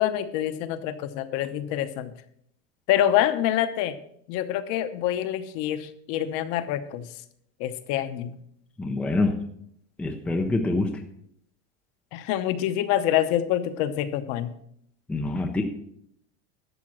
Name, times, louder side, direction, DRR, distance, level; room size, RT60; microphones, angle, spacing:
voice 1, 0.0-2.1 2.9-4.0 4.3-7.1 7.6-8.4 12.1-14.5, left 11 dB, 45° left, 10 dB, 0.9 m, -26 dB
voice 2, 8.8-9.4 10.0-10.9 15.1-15.6, left 2 dB, 5° left, 3 dB, 0.4 m, -25 dB
12.0 x 7.0 x 6.3 m, 0.70 s
supercardioid pair, 175°, 34 cm